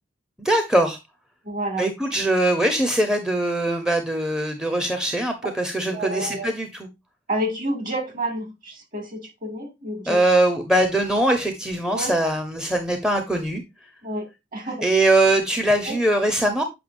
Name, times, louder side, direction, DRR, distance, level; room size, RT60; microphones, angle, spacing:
voice 1, 0.4-1.0 1.8-6.9 10.1-13.6 14.8-16.6, right 1 dB, 5° right, 0.8 m, -21 dB
voice 2, 1.4-1.9 5.9-6.5 7.3-10.2 11.9-12.1 14.0-14.8 15.8-16.0, right 1 dB, 45° right, 2.3 m, -29 dB
7.7 x 5.6 x 2.5 m
head